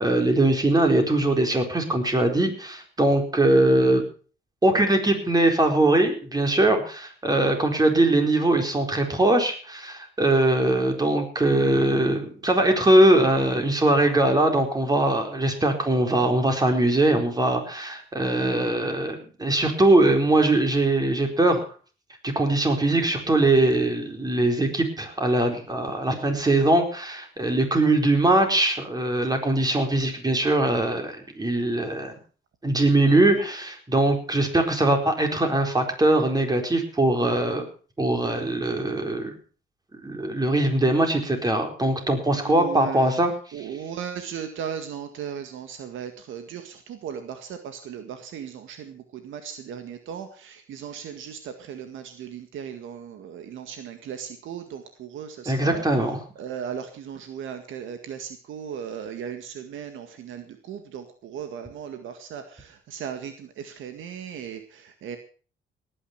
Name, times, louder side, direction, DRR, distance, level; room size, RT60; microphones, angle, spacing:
voice 1, 0.0-4.1 4.6-21.7 22.2-32.2 32.6-37.7 38.0-39.3 40.0-43.7 55.5-56.2, right 1 dB, 20° right, 4 dB, 4.3 m, -21 dB
voice 2, 42.3-43.2 43.5-55.8 56.4-65.2, right 8 dB, 80° right, 7 dB, 1.9 m, -37 dB
18.5 x 10.0 x 5.9 m, 0.40 s
cardioid pair, 90°, 20 cm